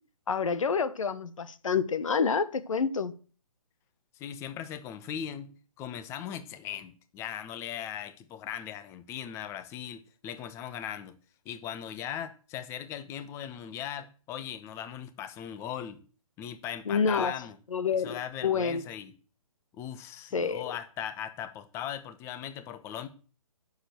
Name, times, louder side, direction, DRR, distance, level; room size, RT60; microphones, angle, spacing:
voice 1, 0.3-3.1 16.9-17.3 17.7-18.8 20.3-20.7, left 5 dB, 60° left, 1.4 m, -28 dB
voice 2, 4.1-11.2 11.4-16.0 16.4-17.6 17.9-19.2 19.8-23.1, left 9 dB, 15° left, 1.0 m, -39 dB
9.8 x 7.2 x 8.0 m
figure-of-eight pair, 145°, 19 cm